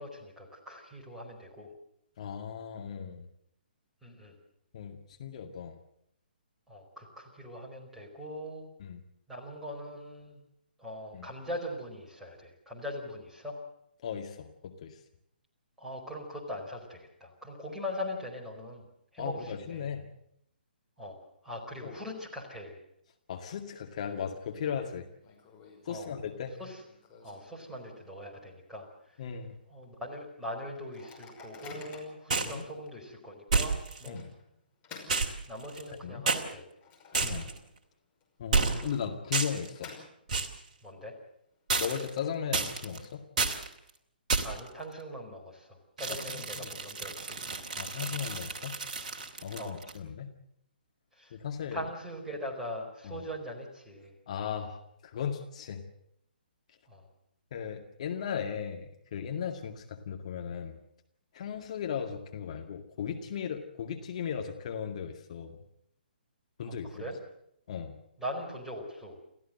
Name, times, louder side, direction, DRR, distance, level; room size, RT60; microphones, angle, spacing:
voice 1, 0.0-1.7 4.0-4.3 6.7-8.7 9.3-10.4 10.8-13.6 15.8-18.8 19.1-19.9 21.0-21.2 21.4-22.7 25.8-26.1 26.6-26.8 27.2-29.2 29.7-34.2 35.5-36.6 37.3-37.4 40.8-41.1 44.4-47.4 49.6-49.8 51.1-51.4 51.7-54.1 56.9-57.1 66.6-67.2 68.2-69.2, equal, 5° right, -2 dB, 4.7 m, -41 dB
voice 2, 2.2-3.3 4.7-5.8 8.8-9.0 11.1-11.3 14.0-15.0 19.2-20.1 21.8-21.9 23.3-25.1 25.8-26.6 29.2-29.6 32.4-32.6 34.1-34.3 36.0-36.3 37.2-37.5 38.4-39.9 41.8-43.2 46.3-46.7 47.8-48.8 49.4-50.4 51.3-51.9 53.0-53.2 54.3-55.8 57.5-60.8 61.3-65.6 66.6-66.9 67.7-68.0, left 7 dB, 40° left, 4 dB, 2.1 m, -37 dB
Microwave oven, 24.5-24.6 24.8-24.9 25.2-28.3 28.7-28.8 29.1-29.4 29.9-30.0 30.7-32.3 32.9-33.0 34.2-36.0 36.4-37.9 38.2-38.3 39.2-40.6, left 5 dB, 20° left, 5.7 m, -52 dB
sound 1, 32.3-32.6 33.5-34.1 35.1-35.9 36.3-36.4 37.1-37.6 38.5-39.0 39.3-39.7 40.3-40.6 41.7-42.2 42.5-43.0 43.4-43.7 44.3-44.7 46.0-50.0, right 4 dB, 40° right, 2.6 m, -31 dB
29.5 x 14.5 x 7.7 m, 0.74 s
figure-of-eight pair, 130°, 5 cm